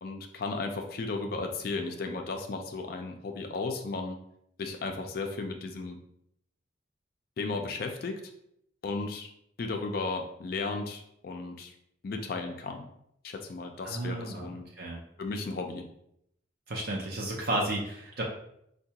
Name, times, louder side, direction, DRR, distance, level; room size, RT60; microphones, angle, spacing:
voice 1, 0.0-4.2 4.6-6.0 7.4-8.2 8.8-9.3 9.6-11.7 12.0-12.9 13.2-14.6 15.2-15.8, left 3 dB, 50° left, 4 dB, 0.3 m, -35 dB
voice 2, 13.8-14.5 14.8-15.0 16.7-18.2, right 1 dB, 55° right, -2 dB, 0.5 m, -32 dB
4.5 x 2.2 x 2.7 m, 0.75 s
head